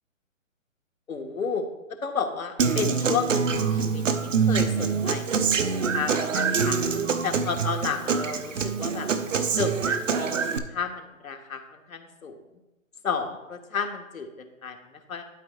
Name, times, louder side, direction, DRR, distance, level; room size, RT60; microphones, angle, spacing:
voice 1, 1.1-1.7 2.0-5.5 5.9-6.8 7.2-9.1 9.5-12.4 13.0-15.2, left 5 dB, 85° left, 4 dB, 1.4 m, -32 dB
Human voice / Acoustic guitar, 2.6-10.6, right 5 dB, 65° right, 0.8 m, -25 dB
12.0 x 4.5 x 3.2 m, 1.0 s
hypercardioid pair, 165°, 40 cm